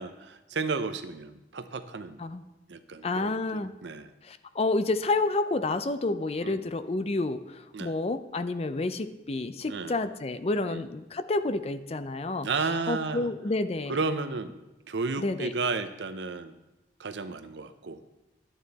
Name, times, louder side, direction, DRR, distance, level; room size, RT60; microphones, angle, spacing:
voice 1, 0.0-2.2 2.7-4.1 6.4-6.6 7.7-7.9 9.7-10.0 10.7-10.9 12.4-13.3 13.9-14.6 14.9-16.5 17.0-18.0, right 4 dB, 80° right, 11 dB, 0.7 m, -33 dB
voice 2, 3.0-3.7 4.2-12.5 12.9-14.0 15.2-15.5, left 2 dB, 35° left, 11 dB, 0.5 m, -29 dB
11.5 x 9.1 x 4.1 m, 1.0 s
head